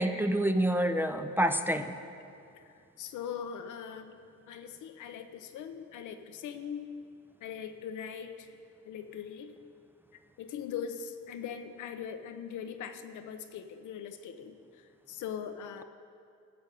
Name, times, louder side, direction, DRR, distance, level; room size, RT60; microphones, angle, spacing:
voice 1, 0.0-1.9, right 1 dB, 5° right, 8 dB, 0.5 m, -27 dB
voice 2, 3.0-4.1 4.5-6.9 7.4-8.5 8.8-9.5 10.4-14.6 15.1-15.8, left 8 dB, 80° left, 8 dB, 0.8 m, -40 dB
14.5 x 5.2 x 6.8 m, 2.4 s
cardioid pair, 90°, 30 cm